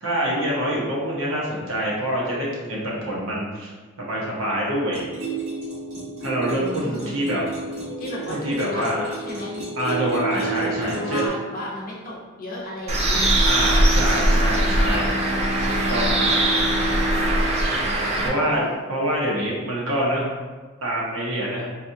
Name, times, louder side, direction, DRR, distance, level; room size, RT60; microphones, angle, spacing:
voice 1, 0.0-3.7 4.0-5.1 6.2-7.4 8.3-9.1 9.8-11.3 13.4-15.2 15.6-16.3 18.2-20.3 20.8-21.7, equal, 70° right, -4 dB, 0.9 m, -26 dB
sound 1, 4.9-11.3, right 3 dB, 90° right, 1.5 m, -31 dB
voice 2, 6.5-7.2 8.0-8.8 9.2-9.6 10.3-13.2 17.8-18.6, left 1 dB, 45° left, -4 dB, 0.8 m, -34 dB
Bowed string instrument, 12.9-19.2 19.6-19.7, equal, 80° left, 0.6 m, -30 dB
Bird, 12.9-18.3, right 1 dB, 30° right, 0.4 m, -21 dB
4.2 x 2.4 x 2.7 m, 1.3 s
head